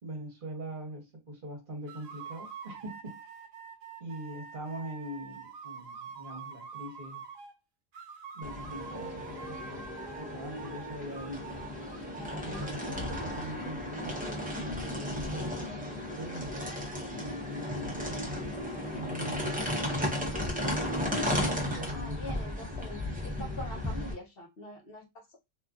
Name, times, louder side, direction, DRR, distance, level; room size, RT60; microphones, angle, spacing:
voice 1, 0.0-3.2 4.0-7.2 8.3-11.5 12.4-16.7 17.1-18.5 18.9-19.5 21.3-22.2, equal, 45° right, 1.1 m, -42 dB
sound 1, 1.9-7.5 7.9-10.3 10.6-13.5, right 7 dB, 80° right, 1.0 m, -46 dB
sound 2, 8.4-24.1, left 1 dB, 10° right, 0.5 m, -34 dB
voice 2, 21.9-25.4, equal, 55° left, 0.9 m, -44 dB
2.8 x 2.4 x 2.3 m
omnidirectional pair, 1.3 m